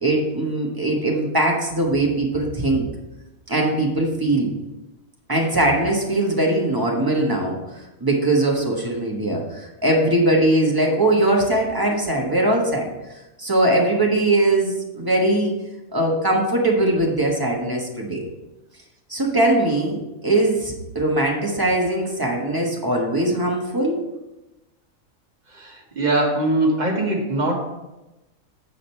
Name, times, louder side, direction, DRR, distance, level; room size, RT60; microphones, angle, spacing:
voice 1, 0.0-2.9 3.5-4.5 5.3-7.6 8.0-12.9 13.4-15.6 15.9-18.3 19.1-24.0, right 1 dB, 15° right, -1 dB, 1.2 m, -21 dB
voice 2, 25.5-27.5, right 2 dB, 35° right, -1 dB, 1.5 m, -22 dB
8.3 x 5.1 x 4.4 m, 0.99 s
omnidirectional pair, 1.4 m